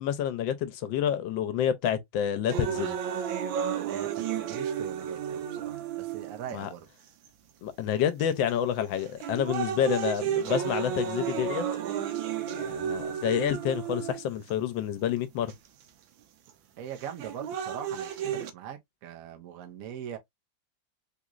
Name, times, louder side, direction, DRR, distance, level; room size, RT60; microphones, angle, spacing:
voice 1, 0.0-3.0 6.5-6.7 7.6-11.6 12.6-15.5, left 9 dB, 85° left, 1.3 m, -28 dB
sound 1, 2.5-6.5 7.3-7.4 8.2-8.5 9.0-14.5 15.5-15.6 17.0-18.5, right 8 dB, 90° right, 1.4 m, -32 dB
voice 2, 3.7-6.9 16.8-20.2, right 9 dB, 65° right, 0.9 m, -41 dB
3.7 x 2.9 x 2.4 m
omnidirectional pair, 2.1 m